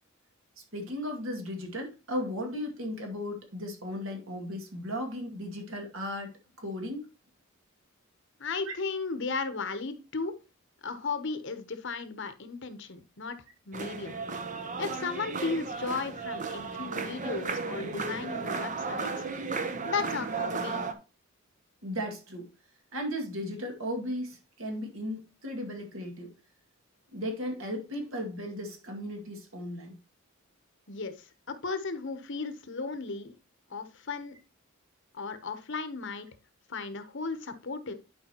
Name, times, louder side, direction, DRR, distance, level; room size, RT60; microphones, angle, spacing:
voice 1, 0.7-7.1 8.7-8.8 21.8-22.5 22.9-26.3 27.1-30.0, equal, 65° right, 2.2 m, -36 dB
voice 2, 8.4-10.4 10.8-13.4 13.7-14.2 14.8-19.2 19.8-20.8 30.9-33.3 33.7-34.4 35.1-36.3 36.7-37.9, left 4 dB, 60° left, 1.0 m, -35 dB
sound 1, 13.7-20.9, right 4 dB, 35° right, 0.8 m, -34 dB
11.0 x 5.0 x 3.0 m
head